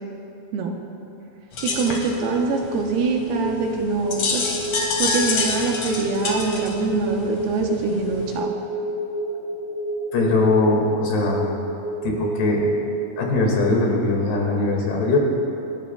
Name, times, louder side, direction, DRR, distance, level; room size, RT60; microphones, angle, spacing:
sound 1, 1.5-8.4, left 3 dB, 55° left, 2.0 m, -28 dB
voice 1, 1.6-4.5 5.0-8.5, right 4 dB, 75° right, 1 dB, 2.7 m, -24 dB
sound 2, 1.8-13.8, equal, 20° left, 3.6 m, -30 dB
voice 2, 10.1-11.5 12.0-12.7 13.2-15.2, left 2 dB, 75° left, -1 dB, 4.2 m, -21 dB
27.5 x 12.5 x 2.3 m, 2.8 s
omnidirectional pair, 4.9 m